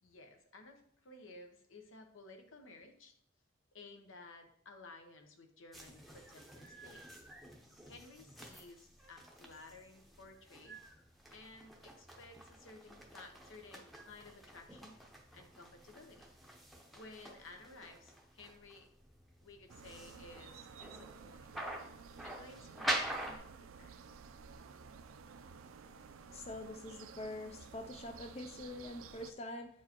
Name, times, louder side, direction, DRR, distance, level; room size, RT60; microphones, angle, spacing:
voice 1, 0.0-3.1 3.7-7.2 7.9-10.8 11.3-14.9 15.3-16.3 16.9-18.9 19.4-21.7 22.2-23.9, left 3 dB, 75° left, 5 dB, 1.0 m, -56 dB
sound 1, 5.7-23.4, right 1 dB, ahead, 0.7 m, -46 dB
sound 2, 19.7-29.3, right 5 dB, 85° right, 0.4 m, -54 dB
voice 2, 26.3-29.7, left 1 dB, 30° left, 4 dB, 0.4 m, -45 dB
8.3 x 4.7 x 2.9 m, 0.66 s
head